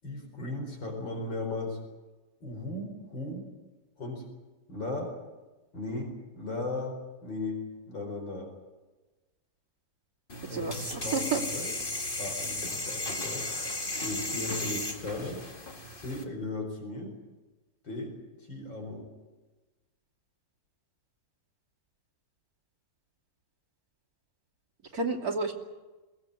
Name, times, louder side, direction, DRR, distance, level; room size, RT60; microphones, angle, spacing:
voice 1, 0.0-1.8 2.4-3.5 4.0-4.3 4.7-5.1 5.7-7.6 7.9-8.5 10.5-11.2 11.5-11.7 12.2-13.5 14.0-15.4 15.9-17.1 17.8-18.1 18.5-19.0 24.9-25.0, left 2 dB, 85° left, 2 dB, 5.4 m, -36 dB
sound 1, 10.3-16.2, left 2 dB, 30° left, 2.1 m, -35 dB
voice 2, 10.5-11.4 24.9-25.5, right 4 dB, 50° right, 1 dB, 3.2 m, -30 dB
22.0 x 18.5 x 9.7 m, 1.2 s
omnidirectional pair, 2.0 m